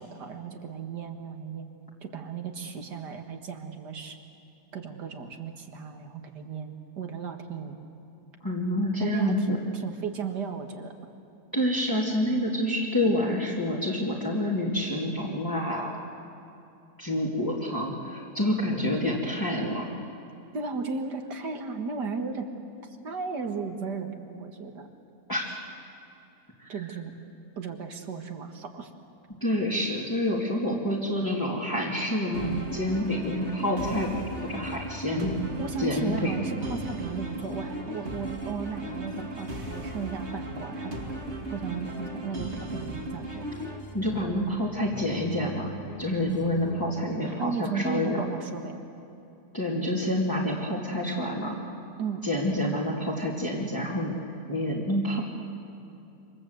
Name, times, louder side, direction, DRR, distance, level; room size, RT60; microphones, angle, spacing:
voice 1, 0.0-1.7 2.0-4.2 4.7-7.7 9.0-10.9 20.5-22.5 23.0-24.9 26.7-27.1 27.6-28.9 35.6-40.9 41.5-43.5 47.3-48.7 52.0-52.3, right 5 dB, 85° right, 4 dB, 2.4 m, -35 dB
voice 2, 8.4-9.6 11.5-15.9 17.0-19.9 25.3-25.5 26.6-26.7 29.4-34.1 34.4-35.3 35.8-36.3 43.9-45.7 46.0-48.2 49.5-51.6 52.2-54.1 54.5-55.2, left 1 dB, 10° left, -6 dB, 2.6 m, -28 dB
sound 1, 32.3-43.8, right 1 dB, 40° right, 2.5 m, -37 dB
sound 2, 33.1-46.8, equal, 75° left, 2.9 m, -45 dB
28.0 x 26.0 x 8.0 m, 2.7 s
omnidirectional pair, 1.7 m